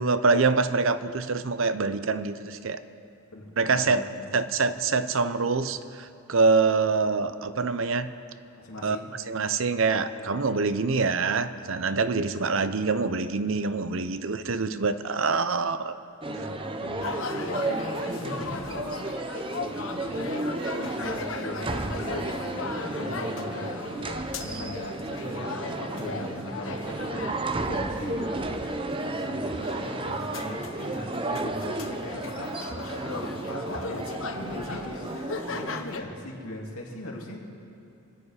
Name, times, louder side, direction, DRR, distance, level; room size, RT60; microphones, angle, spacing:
voice 1, 0.0-2.8 3.6-8.1 8.8-9.0 9.3-16.0, right 4 dB, 65° right, 12 dB, 0.7 m, -25 dB
voice 2, 3.3-4.2 8.6-9.2 16.3-19.1 19.4-23.8 24.4-28.3 29.0-37.4, left 1 dB, 80° left, -1 dB, 2.7 m, -40 dB
sound 1, 16.2-35.8, right 2 dB, 25° right, 0.7 m, -33 dB
sound 2, 17.0-36.0, left 4 dB, 65° left, 0.9 m, -38 dB
26.5 x 9.8 x 4.9 m, 2.7 s
head